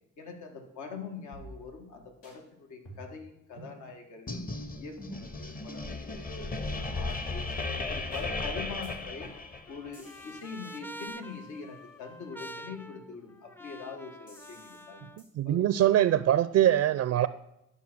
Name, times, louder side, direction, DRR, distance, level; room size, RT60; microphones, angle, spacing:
voice 1, 0.2-4.4 4.7-7.5 7.8-9.3 9.7-15.1 15.5-15.6, left 5 dB, 75° left, 4 dB, 1.6 m, -43 dB
sound 1, 1.3-1.9 2.2-2.3 2.8-3.2 3.6-3.8 4.3-4.4 5.0-5.3 5.7-5.8 6.4-6.5 7.1-7.2 7.6-7.7 8.1-8.3 8.8-8.9 9.2-9.5 9.9-11.8 14.3-14.8 15.2-15.3, equal, 90° left, 4.6 m, -50 dB
sound 2, 4.3-9.9, left 3 dB, 30° left, 0.9 m, -35 dB
Trumpet, 8.9-15.2, right 1 dB, 10° left, 0.4 m, -47 dB
voice 2, 15.4-17.3, right 12 dB, 55° right, 15 dB, 0.4 m, -23 dB
11.5 x 5.4 x 6.1 m, 0.86 s
cardioid pair, 90°, 30 cm